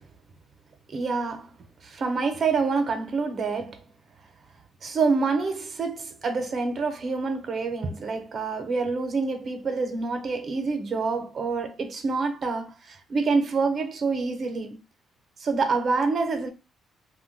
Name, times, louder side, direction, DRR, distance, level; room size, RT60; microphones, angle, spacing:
voice 1, 0.9-1.5 1.8-3.8 4.8-14.8 15.4-16.5, right 4 dB, 50° right, 0.7 m, -27 dB
2.5 x 2.2 x 3.8 m
cardioid pair, 90°, 0 cm